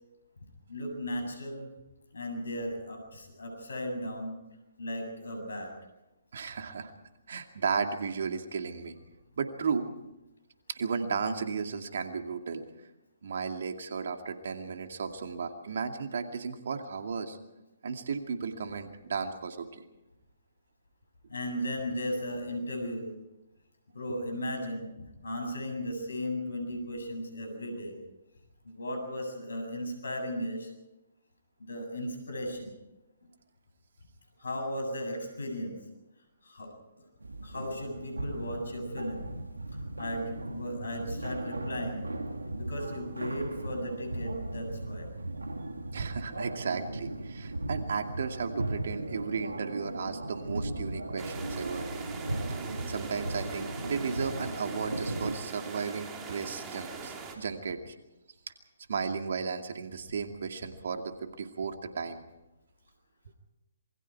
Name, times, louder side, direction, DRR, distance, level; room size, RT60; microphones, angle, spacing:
voice 1, 0.7-1.7 2.1-4.4 4.8-5.7 21.3-23.1 23.9-24.9 25.2-28.0 28.6-30.7 31.6-32.7 34.4-35.7 36.4-36.7 37.4-39.3 40.0-42.1 42.5-45.1, equal, 75° left, 5 dB, 7.7 m, -36 dB
voice 2, 6.3-6.9 7.3-9.0 9.4-9.9 10.7-12.6 13.2-17.4 17.8-19.8 24.1-24.2 45.9-51.9 52.9-57.9 58.9-62.2, right 5 dB, 60° right, 6 dB, 2.4 m, -34 dB
sound 1, 37.2-55.4, right 2 dB, 85° right, 2.5 m, -37 dB
sound 2, 51.2-57.3, right 5 dB, 20° right, 3.3 m, -42 dB
27.0 x 22.5 x 4.7 m, 0.97 s
figure-of-eight pair, 135°, 0 cm